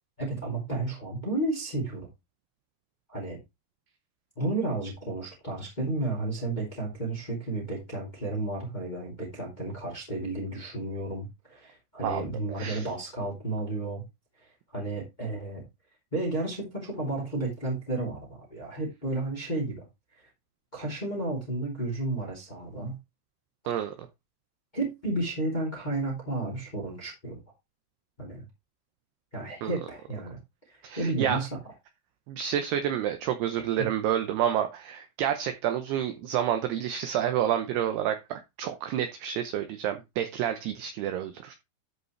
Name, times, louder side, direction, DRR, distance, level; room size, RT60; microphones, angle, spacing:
voice 1, 0.2-2.1 3.1-3.4 4.4-14.0 14.7-15.6 16.1-19.8 20.7-23.0 24.7-27.4 28.2-28.4 29.3-30.4 30.7-31.5 33.8-33.9, right 2 dB, 15° left, 2.0 m, -32 dB
voice 2, 30.8-31.4 32.3-41.6, right 10 dB, 85° right, 2.3 m, -29 dB
13.0 x 5.3 x 3.2 m
omnidirectional pair, 5.7 m